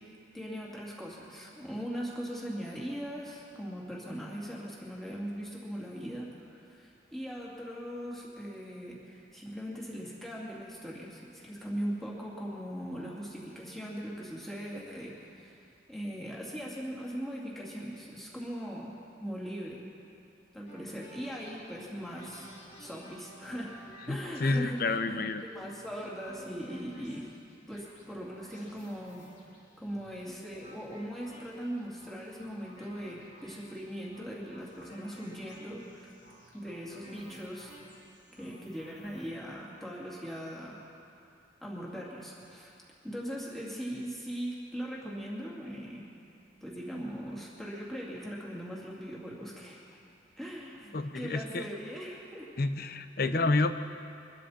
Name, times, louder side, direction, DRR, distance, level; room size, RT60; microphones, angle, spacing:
voice 1, 0.3-15.6 15.9-19.8 20.5-22.5 22.8-23.8 24.1-27.3 27.7-29.2 29.8-36.1 36.5-37.7 38.3-40.8 41.6-42.7 43.0-46.0 46.6-50.0 50.4-52.5 53.2-53.5, equal, ahead, -5 dB, 2.6 m, -40 dB
sound 1, 20.6-39.3, equal, 75° left, 3.9 m, -54 dB
voice 2, 24.1-25.4 50.9-51.7 52.6-53.7, left 3 dB, 55° left, 10 dB, 0.7 m, -29 dB
23.5 x 12.5 x 4.3 m, 2.6 s
head